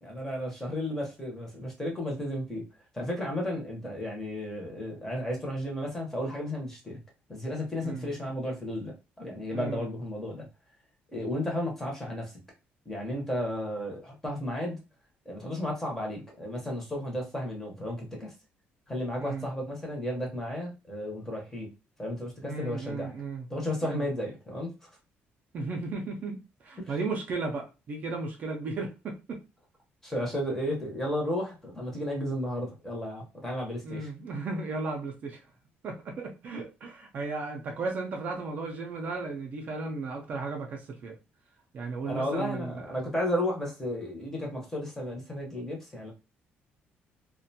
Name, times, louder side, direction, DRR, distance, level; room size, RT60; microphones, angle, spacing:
voice 1, 0.0-2.6 2.9-7.0 7.3-10.5 11.1-12.4 12.9-14.8 15.2-18.3 18.9-21.7 22.0-23.1 23.5-24.9 26.8-27.0 30.0-34.1 42.1-46.1, left 1 dB, 10° left, -1 dB, 0.7 m, -33 dB
voice 2, 9.5-9.9 19.2-19.5 22.5-23.5 23.8-24.1 25.5-29.4 33.8-35.4 35.8-41.2 41.7-42.8, right 3 dB, 40° right, 2 dB, 0.4 m, -35 dB
2.4 x 2.1 x 2.7 m, 0.29 s
cardioid pair, 170°, 4 cm